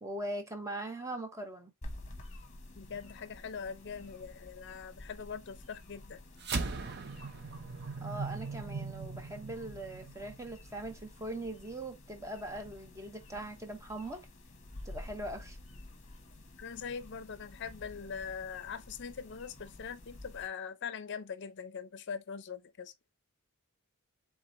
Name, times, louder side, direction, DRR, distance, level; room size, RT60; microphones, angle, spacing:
voice 1, 0.0-1.7 8.0-14.3 14.8-15.6, right 1 dB, 15° right, 0.8 m, -41 dB
sound 1, 1.8-20.5, left 1 dB, 35° left, 1.0 m, -51 dB
voice 2, 2.8-6.2 16.6-22.9, left 6 dB, 55° left, 0.5 m, -42 dB
sound 2, 6.4-11.0, right 4 dB, 50° right, 0.7 m, -39 dB
4.8 x 3.6 x 2.5 m
head